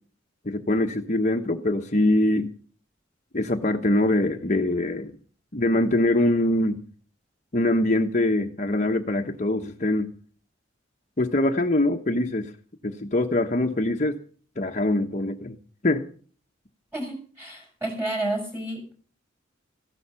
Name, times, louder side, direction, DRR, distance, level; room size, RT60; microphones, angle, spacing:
voice 1, 0.4-2.5 3.3-5.1 5.5-6.8 7.5-10.1 11.2-12.5 12.8-14.2 14.6-15.6 15.8-16.1, left 1 dB, 40° left, 3 dB, 1.1 m, -23 dB
voice 2, 16.9-18.8, right 1 dB, 10° right, 3 dB, 6.3 m, -30 dB
15.5 x 11.5 x 5.7 m, 0.43 s
head